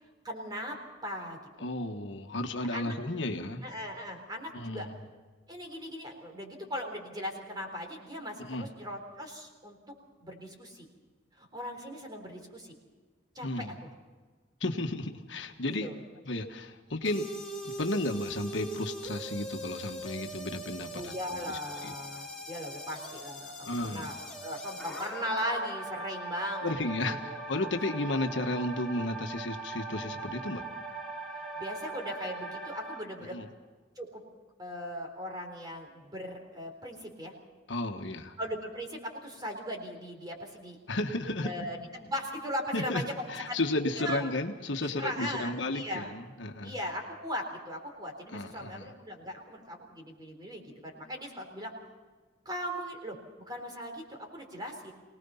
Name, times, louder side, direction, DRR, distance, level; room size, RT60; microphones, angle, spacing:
voice 1, 0.2-0.8 1.0-1.7 2.7-2.9 3.6-4.9 5.5-9.8 10.2-10.9 11.3-12.8 13.3-13.7 15.6-16.0 20.9-23.6 23.8-26.7 27.0-27.7 31.3-33.4 34.0-34.2 34.6-37.3 38.4-40.8 41.4-43.6 43.9-44.3 44.8-46.1 46.6-51.7 52.5-54.9, equal, 20° right, 2 dB, 4.0 m, -38 dB
voice 2, 1.6-3.6 4.5-4.9 8.4-8.7 13.4-13.7 14.6-15.9 16.2-17.3 17.6-21.9 23.6-24.1 26.6-30.7 33.3-33.5 37.7-38.4 40.9-41.5 42.7-46.7 48.3-48.9, left 2 dB, 70° left, 5 dB, 1.5 m, -33 dB
sound 1, 17.0-33.0, right 2 dB, ahead, 4.6 m, -41 dB
24.0 x 18.5 x 5.7 m, 1.4 s
head